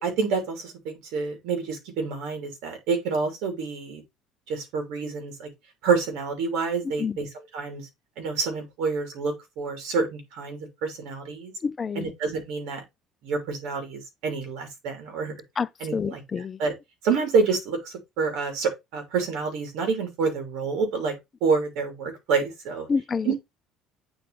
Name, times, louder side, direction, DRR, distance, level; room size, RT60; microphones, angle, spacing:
voice 1, 0.0-4.0 4.5-5.5 5.8-7.3 7.5-7.9 8.2-11.5 11.9-12.8 13.2-15.3 15.8-16.2 16.6-16.7 17.0-21.1 21.4-22.9 23.2-23.4, right 5 dB, 75° right, 3.1 m, -28 dB
voice 2, 6.8-7.2 11.6-12.1 15.6-16.6 22.9-23.3, left 5 dB, 25° left, 0.4 m, -28 dB
8.8 x 3.9 x 3.3 m
cardioid pair, 140°, 0 cm